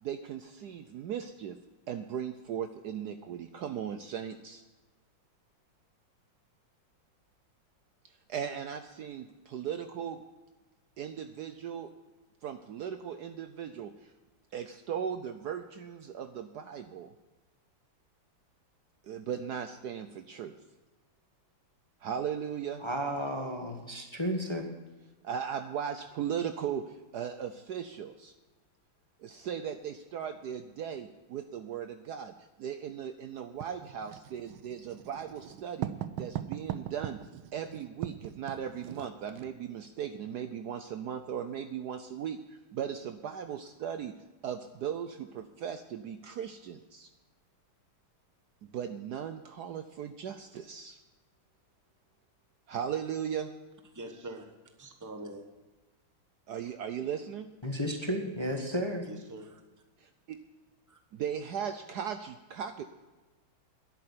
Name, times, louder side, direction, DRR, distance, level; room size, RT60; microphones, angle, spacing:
voice 1, 0.0-1.6 1.9-4.6 8.3-10.2 11.0-11.9 12.4-14.1 14.5-17.1 19.0-20.5 22.0-22.8 25.2-28.3 29.2-32.3 32.6-35.9 36.2-37.2 37.5-44.1 44.4-47.1 48.6-51.0 52.7-53.5 56.5-57.5 60.0-60.4 61.1-62.8, right 8 dB, 65° right, 1.1 m, -37 dB
voice 2, 22.8-24.7 57.6-59.1, equal, 15° left, 1.1 m, -33 dB
Writing, 33.6-39.5, right 11 dB, 90° right, 1.5 m, -40 dB
voice 3, 53.9-55.5 59.1-59.5 60.9-61.0, right 1 dB, 10° right, 0.9 m, -44 dB
11.0 x 8.6 x 9.6 m
omnidirectional pair, 2.2 m